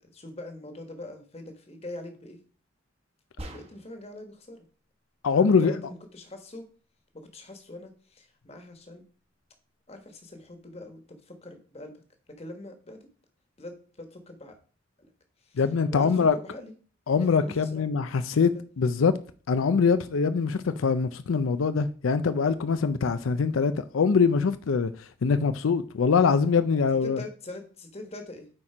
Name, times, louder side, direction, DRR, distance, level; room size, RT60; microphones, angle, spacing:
voice 1, 0.0-2.4 3.5-4.7 5.3-6.7 7.1-9.0 9.9-12.0 12.3-13.1 13.6-14.6 15.0-15.1 15.4-15.6 15.9-16.7 17.2-18.7 27.0-28.5, left 1 dB, 30° left, 1.3 m, -43 dB
sound 1, 3.4-4.1, right 1 dB, 30° right, 1.2 m, -42 dB
voice 2, 5.2-5.7 15.6-16.3 17.1-18.5 18.8-19.1 19.5-27.2, left 5 dB, 90° left, 0.5 m, -23 dB
8.7 x 4.3 x 4.9 m
head